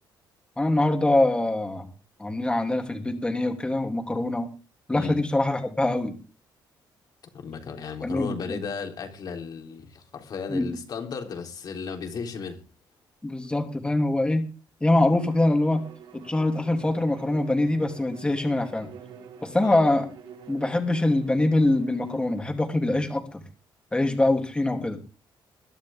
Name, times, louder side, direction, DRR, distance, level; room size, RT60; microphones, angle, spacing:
voice 1, 0.6-1.9 2.2-4.5 4.9-6.1 8.0-8.6 10.5-10.7 13.2-14.4 14.8-15.8 16.1-18.9 19.4-20.1 20.5-23.4 23.9-25.0, left 2 dB, 10° left, 3.0 m, -24 dB
voice 2, 7.3-12.6 19.6-19.8, left 5 dB, 50° left, 3.8 m, -35 dB
Bowed string instrument, 15.1-22.5, right 6 dB, 70° right, 3.8 m, -47 dB
21.5 x 11.5 x 3.7 m
cardioid pair, 135°, 9 cm